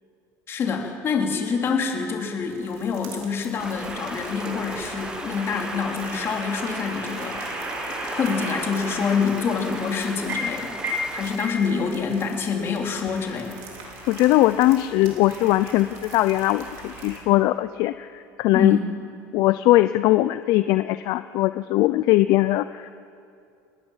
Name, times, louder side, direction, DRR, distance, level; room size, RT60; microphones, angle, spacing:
voice 1, 0.5-7.5 8.1-10.8 11.1-13.5 18.5-18.8, left 5 dB, 30° left, 1 dB, 3.6 m, -26 dB
sound 1, 2.4-17.2, right 5 dB, 80° right, 5.4 m, -48 dB
Stream, 3.6-11.4, right 2 dB, 10° right, 1.1 m, -38 dB
sound 2, 3.8-17.2, equal, 30° right, 6.3 m, -35 dB
voice 2, 14.1-18.8 19.3-22.9, left 16 dB, 55° left, 12 dB, 0.6 m, -20 dB
26.5 x 19.5 x 7.4 m, 2.5 s
cardioid pair, 150°, 8 cm